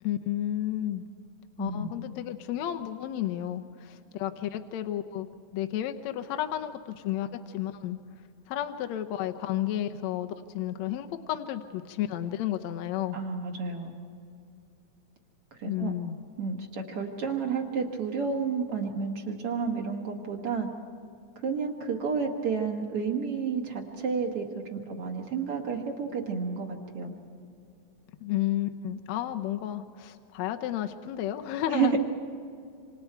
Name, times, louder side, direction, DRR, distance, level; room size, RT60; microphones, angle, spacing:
voice 1, 0.0-1.0 1.6-8.0 8.5-13.2 15.6-16.2 28.2-32.0, left 12 dB, 75° left, 6 dB, 1.9 m, -32 dB
voice 2, 1.6-1.9 13.1-13.9 15.6-16.0 16.4-20.7 21.4-27.1 31.7-32.0, right 5 dB, 55° right, 1 dB, 2.6 m, -31 dB
27.0 x 26.0 x 4.6 m, 2.5 s
omnidirectional pair, 3.4 m